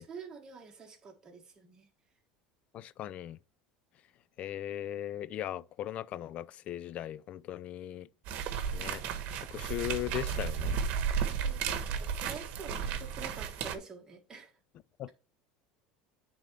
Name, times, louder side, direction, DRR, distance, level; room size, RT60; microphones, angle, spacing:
voice 1, 0.0-1.9 11.3-14.5, right 5 dB, 20° right, 1.6 m, -47 dB
voice 2, 2.7-3.4 4.4-8.1 8.7-9.0 9.5-10.8 15.0-15.1, left 12 dB, 40° left, 0.3 m, -38 dB
sound 1, 8.3-13.8, right 7 dB, 55° right, 1.2 m, -33 dB
9.2 x 3.9 x 3.3 m
supercardioid pair, 135°, 3 cm